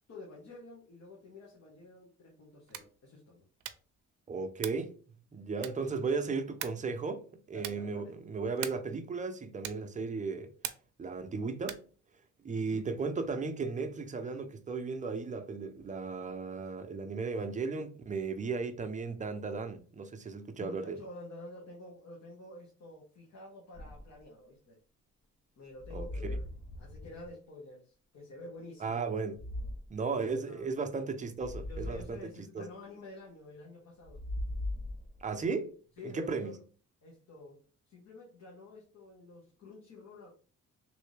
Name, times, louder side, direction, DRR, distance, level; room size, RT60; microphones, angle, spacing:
voice 1, 0.1-3.4 7.5-8.2 12.5-12.9 20.6-24.8 25.6-26.4 26.8-29.0 30.3-30.7 31.7-34.2 36.0-36.6 37.0-40.3, left 2 dB, 60° left, 1.3 m, -49 dB
sound 1, 2.6-3.0 3.6-4.0 4.6-4.9 5.6-6.0 6.6-6.9 7.6-7.9 8.6-9.0 9.6-10.0 10.6-11.0 11.6-12.0, right 11 dB, 75° right, 0.5 m, -42 dB
voice 2, 4.3-5.0 5.3-7.2 7.5-10.5 11.0-11.8 12.4-21.0 25.9-26.1 28.8-29.4 29.9-32.7 35.2-35.8 36.0-36.5, right 4 dB, 25° right, 0.6 m, -35 dB
sound 2, 23.7-24.2 25.8-27.3 29.3-30.0 31.4-32.2 34.0-35.4, left 1 dB, 30° left, 0.5 m, -39 dB
3.3 x 2.7 x 3.3 m
cardioid pair, 90°, 30 cm